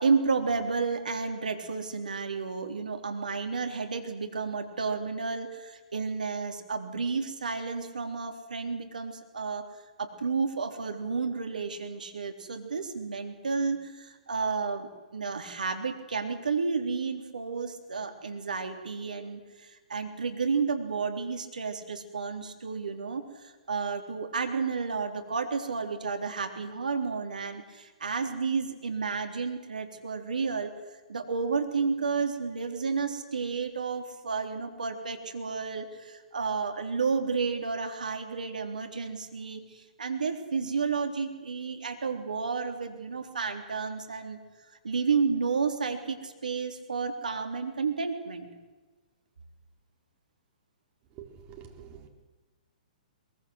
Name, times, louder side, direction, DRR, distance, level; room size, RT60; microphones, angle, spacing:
voice 1, 0.0-9.7 10.0-30.7 31.1-44.4 44.8-48.5, right 5 dB, 75° right, 5 dB, 3.6 m, -31 dB
voice 2, 51.2-52.1, right 8 dB, 30° right, 3 dB, 4.3 m, -47 dB
22.5 x 22.0 x 8.0 m, 1.2 s
figure-of-eight pair, 120°, 4 cm